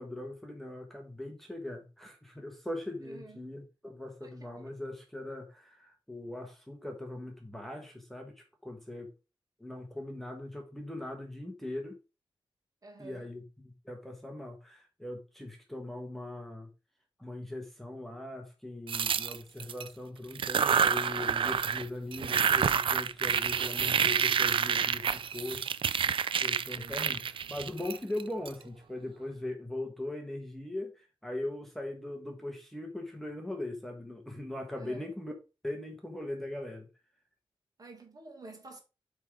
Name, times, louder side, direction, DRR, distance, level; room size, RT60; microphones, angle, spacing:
voice 1, 0.0-9.1 9.6-12.0 13.0-16.7 17.2-35.3 35.6-36.9, left 1 dB, 5° left, 1.2 m, -40 dB
voice 2, 3.0-3.5 4.2-4.7 12.8-13.3 26.7-27.1 34.8-35.1 37.8-38.8, right 3 dB, 40° right, 1.9 m, -50 dB
sound 1, 18.9-19.9 20.3-21.9 22.1-28.5, right 7 dB, 65° right, 0.4 m, -28 dB
7.9 x 3.7 x 4.9 m
wide cardioid pair, 170°, 9 cm